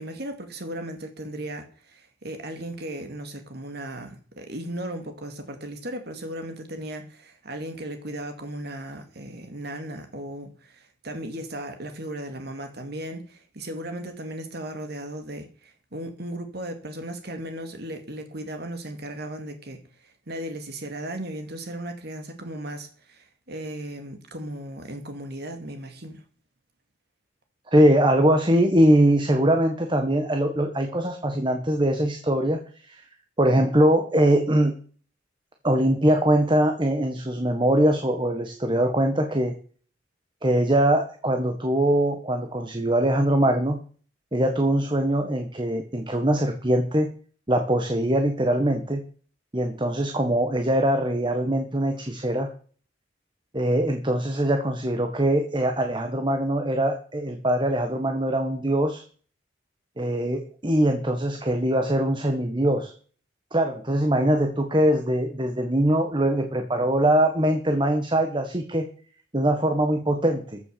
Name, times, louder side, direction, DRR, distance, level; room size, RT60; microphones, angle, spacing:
voice 1, 0.0-19.8 20.3-26.2, right 1 dB, 55° right, 2.3 m, -36 dB
voice 2, 27.7-32.6 32.9-33.0 33.4-34.8 35.6-39.5 40.4-43.8 44.3-47.1 47.5-49.0 49.5-52.5 53.5-59.0 60.0-62.9 63.5-68.9 69.3-70.6, right 1 dB, 25° right, 1.5 m, -22 dB
14.5 x 6.9 x 6.9 m
head